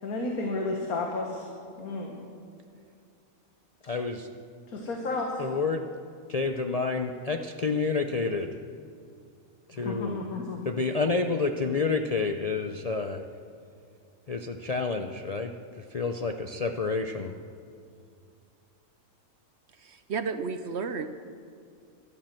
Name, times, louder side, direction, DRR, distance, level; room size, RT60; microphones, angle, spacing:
voice 1, 0.0-1.5 1.8-2.2 4.7-5.5 9.7-10.6, left 2 dB, 85° left, 1 dB, 1.9 m, -32 dB
voice 2, 3.8-4.3 5.4-5.8 6.3-8.5 9.7-10.2 10.6-13.3 14.3-17.4, left 4 dB, 60° left, 5 dB, 0.4 m, -29 dB
voice 3, 19.7-21.1, right 5 dB, 60° right, 10 dB, 0.8 m, -32 dB
13.0 x 12.0 x 7.6 m, 2.4 s
omnidirectional pair, 1.5 m